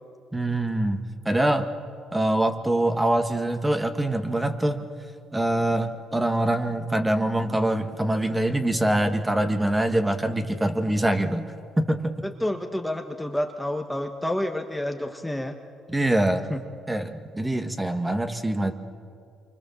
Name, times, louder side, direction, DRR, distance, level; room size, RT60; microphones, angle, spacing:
voice 1, 0.3-1.7 2.1-4.9 5.3-12.2 15.9-16.5 16.9-18.7, right 1 dB, 10° right, 7 dB, 1.8 m, -24 dB
voice 2, 12.2-15.6 16.5-16.6, left 1 dB, 5° left, 4 dB, 1.5 m, -29 dB
28.0 x 24.5 x 7.3 m, 2.2 s
cardioid pair, 80°, 0 cm